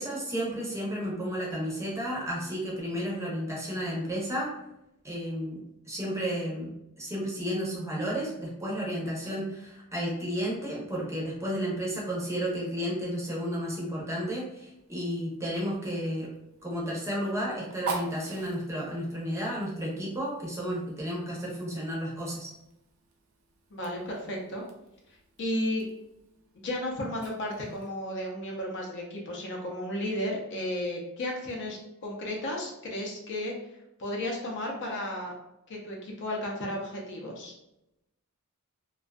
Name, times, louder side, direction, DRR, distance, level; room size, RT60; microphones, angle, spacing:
voice 1, 0.0-4.5 5.0-16.3 16.6-22.5, equal, 15° right, -4 dB, 0.6 m, -32 dB
Fire, 14.7-28.0, right 4 dB, 60° right, 0.5 m, -45 dB
voice 2, 23.7-24.6 25.4-25.9 26.5-33.5 34.0-35.3 35.7-37.5, left 1 dB, 55° left, -1 dB, 0.6 m, -33 dB
2.5 x 2.3 x 2.2 m, 0.87 s
head